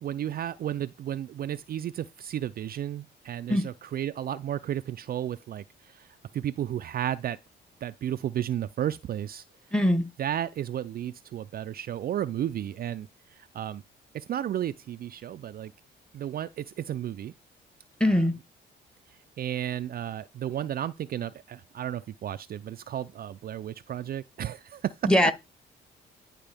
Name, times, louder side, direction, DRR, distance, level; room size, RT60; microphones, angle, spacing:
voice 1, 0.0-6.1 6.3-7.4 7.8-9.4 10.2-13.1 13.5-13.8 14.1-15.7 16.1-17.3 19.4-25.1, right 11 dB, 50° right, 0.4 m, -33 dB
voice 2, 9.7-10.1 18.0-18.3 25.0-25.3, left 1 dB, 5° left, 1.1 m, -21 dB
10.5 x 4.5 x 3.5 m
cardioid pair, 90°, 20 cm